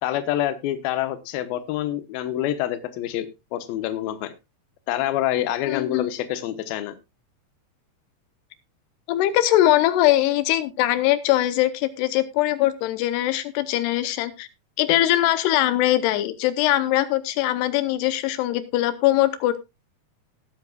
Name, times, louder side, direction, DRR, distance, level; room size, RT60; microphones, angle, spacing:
voice 1, 0.0-4.3 4.9-6.9, left 12 dB, 70° left, 10 dB, 2.8 m, -27 dB
voice 2, 5.7-6.1 9.1-14.5 14.8-19.6, left 14 dB, 90° left, 12 dB, 2.9 m, -21 dB
18.5 x 9.0 x 2.3 m, 0.24 s
omnidirectional pair, 4.6 m